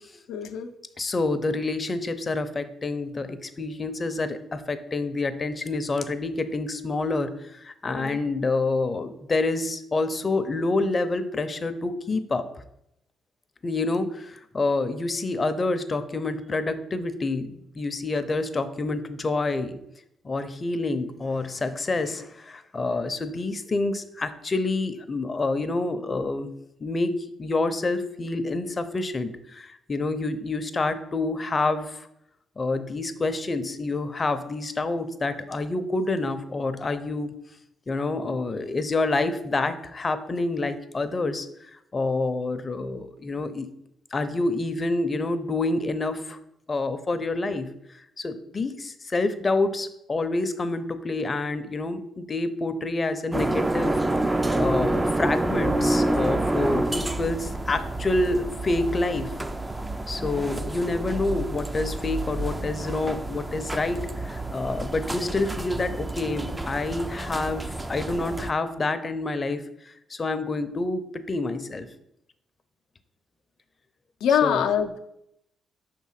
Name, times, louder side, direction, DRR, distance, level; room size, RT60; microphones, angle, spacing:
voice 1, 0.3-0.7 7.9-8.2 74.2-75.0, left 8 dB, 85° left, 7 dB, 0.5 m, -24 dB
voice 2, 1.0-12.5 13.6-19.8 20.2-26.5 26.8-32.1 32.6-37.3 37.9-41.5 41.9-43.7 44.1-46.4 46.7-47.7 48.2-54.0 54.2-59.3 60.1-71.9 74.4-74.6, left 2 dB, 30° left, 10 dB, 0.6 m, -28 dB
sound 1, 53.3-68.5, right 1 dB, 15° right, 0.4 m, -28 dB
5.7 x 3.7 x 5.7 m, 0.79 s
cardioid pair, 90°, 0 cm